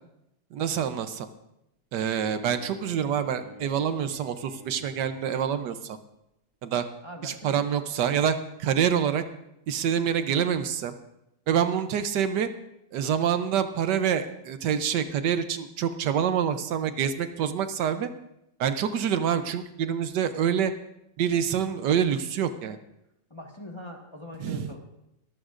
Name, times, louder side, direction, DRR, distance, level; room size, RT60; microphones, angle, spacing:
voice 1, 0.5-1.3 1.9-6.0 6.6-6.9 7.2-9.2 9.7-10.9 11.5-12.5 12.9-18.1 18.6-20.7 21.2-22.8 24.4-24.7, right 8 dB, 75° right, 10 dB, 1.3 m, -26 dB
Bowed string instrument, 2.1-5.3, left 1 dB, 15° right, 2.4 m, -47 dB
voice 2, 7.0-7.6 23.3-24.8, left 1 dB, 15° left, 0 dB, 1.4 m, -42 dB
22.5 x 14.5 x 2.5 m, 0.83 s
omnidirectional pair, 1.9 m